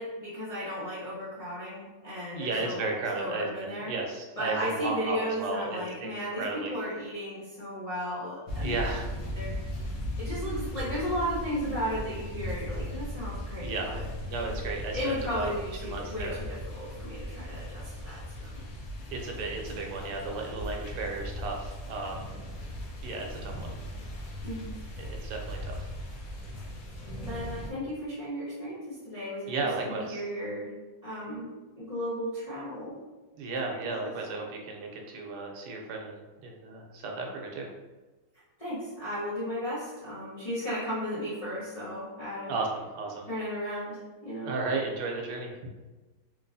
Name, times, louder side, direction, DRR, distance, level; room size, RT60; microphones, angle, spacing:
voice 1, 0.0-2.8 3.1-3.9 4.4-8.8 9.3-9.5 10.2-14.0 14.9-18.5 24.4-24.8 25.1-25.2 27.2-29.5 29.8-30.7 31.0-31.5 31.8-33.0 33.7-34.1 38.6-42.5 43.3-44.5, equal, 30° left, -11 dB, 0.8 m, -35 dB
voice 2, 2.3-6.7 8.6-9.1 13.6-13.9 14.3-15.0 15.3-15.5 15.8-16.4 19.1-22.3 23.0-23.7 25.0-25.9 29.5-30.2 33.4-37.7 42.5-43.3 44.4-45.5, right 3 dB, 85° right, 1 dB, 1.2 m, -34 dB
sound 1, 8.5-27.7, left 1 dB, 65° left, 1.1 m, -38 dB
3.3 x 2.9 x 2.6 m, 1.2 s
omnidirectional pair, 1.7 m